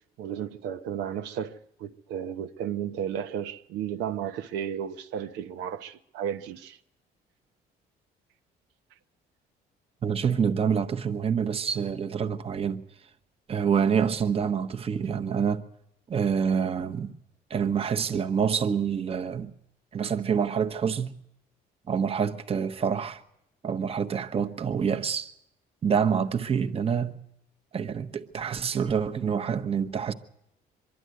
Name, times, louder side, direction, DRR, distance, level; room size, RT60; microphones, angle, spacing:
voice 1, 0.2-6.8, right 9 dB, 90° right, 1.0 m, -33 dB
voice 2, 10.0-12.8 13.5-15.6 16.1-17.2 17.5-19.5 19.9-21.2 21.9-23.2 23.6-25.3 25.8-27.2 27.7-30.1, right 7 dB, 35° right, 1.1 m, -27 dB
24.0 x 11.5 x 9.4 m
cardioid pair, 110°, 17 cm